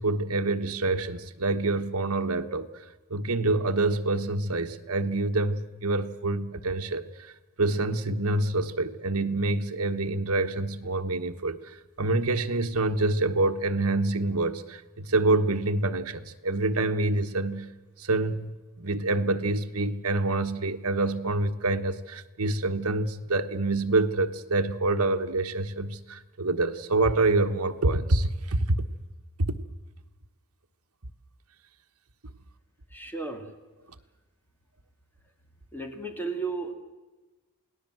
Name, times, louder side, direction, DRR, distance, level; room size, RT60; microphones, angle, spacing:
voice 1, 0.0-2.7 3.1-17.7 18.0-28.8 29.4-29.6, right 2 dB, 75° right, 7 dB, 1.3 m, -26 dB
voice 2, 32.9-33.5 35.7-36.7, right 3 dB, 10° left, 5 dB, 2.4 m, -34 dB
28.0 x 18.5 x 7.7 m, 1.2 s
head